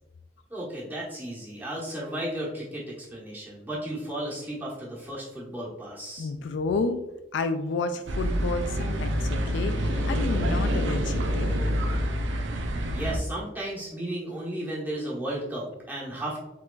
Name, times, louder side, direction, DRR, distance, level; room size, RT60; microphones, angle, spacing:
voice 1, 0.5-6.3 12.9-16.4, right 1 dB, 10° right, -6 dB, 1.2 m, -34 dB
voice 2, 6.2-7.0 7.3-11.6, left 3 dB, 60° left, 9 dB, 0.3 m, -30 dB
sound 1, 8.1-13.2, equal, 65° right, 0.6 m, -27 dB
4.6 x 3.9 x 2.3 m, 0.97 s
head